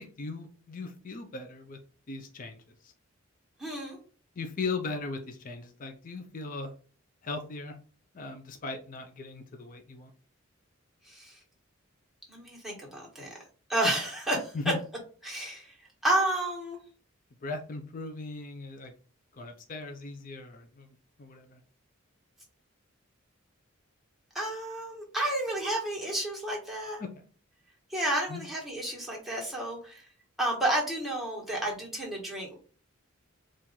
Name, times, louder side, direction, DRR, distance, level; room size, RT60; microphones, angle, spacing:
voice 1, 0.0-1.8 2.1-2.9 4.4-6.7 7.2-7.8 8.1-10.1 14.5-14.8 17.4-18.9 19.3-20.9 21.2-21.6 27.0-27.1 28.3-28.4, left 3 dB, 40° left, 5 dB, 0.5 m, -38 dB
voice 2, 3.6-4.0 11.0-11.4 12.3-13.4 13.7-14.5 15.2-15.8 16.0-16.8 24.3-27.0 27.9-30.1 30.4-32.6, right 1 dB, ahead, -3 dB, 1.3 m, -31 dB
4.3 x 2.5 x 3.8 m, 0.39 s
head